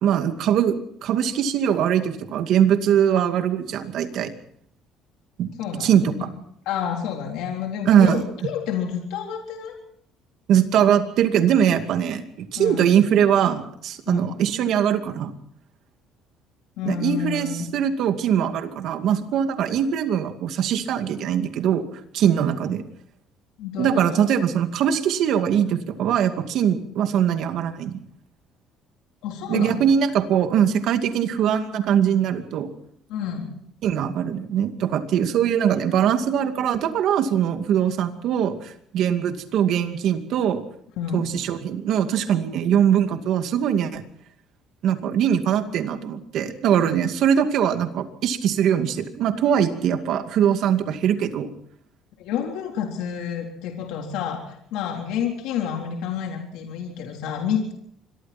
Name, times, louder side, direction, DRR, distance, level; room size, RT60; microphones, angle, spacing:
voice 1, 0.0-4.3 5.4-5.5 5.8-6.0 7.9-8.2 10.5-15.3 16.8-21.8 22.1-22.8 23.8-28.0 29.5-32.7 33.8-40.6 41.1-44.0 44.8-51.5, right 9 dB, 60° right, 7 dB, 2.4 m, -21 dB
voice 2, 5.6-5.9 6.7-9.7 12.6-12.9 14.1-14.3 16.8-17.7 23.6-24.2 29.2-29.8 33.1-33.7 41.0-41.3 46.7-46.8 52.2-57.7, left 8 dB, 85° left, 1 dB, 3.8 m, -29 dB
26.5 x 23.0 x 4.4 m, 0.67 s
cardioid pair, 145°, 0 cm